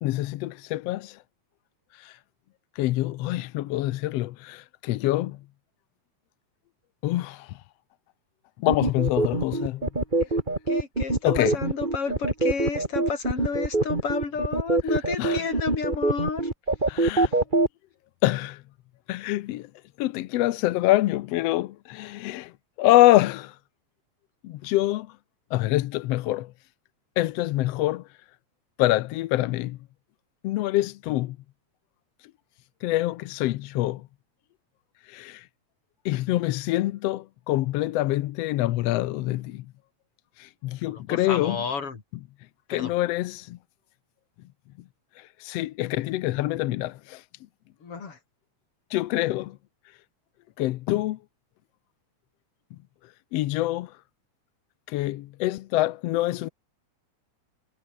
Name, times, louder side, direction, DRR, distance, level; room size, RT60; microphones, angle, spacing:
voice 1, 0.0-1.2 1.9-2.2 2.8-5.4 7.0-7.6 8.6-9.9 11.2-11.5 15.2-15.4 16.9-17.3 18.2-18.6 19.1-19.7 20.0-22.5 22.8-23.6 24.4-25.1 25.5-26.5 27.2-28.1 28.8-29.8 30.4-31.4 32.8-34.1 35.1-35.5 36.0-39.6 40.4-41.6 42.7-43.6 45.2-47.2 48.9-49.6 50.6-51.2 53.3-54.0 54.9-56.5, left 16 dB, 75° left, 1.6 m, -25 dB
sound 1, 8.7-17.7, right 2 dB, 15° right, 2.7 m, -24 dB
voice 2, 10.7-16.4 17.2-17.3 40.9-42.0 42.7-42.9 47.8-48.2, left 5 dB, 50° left, 4.5 m, -31 dB
omnidirectional pair, 3.3 m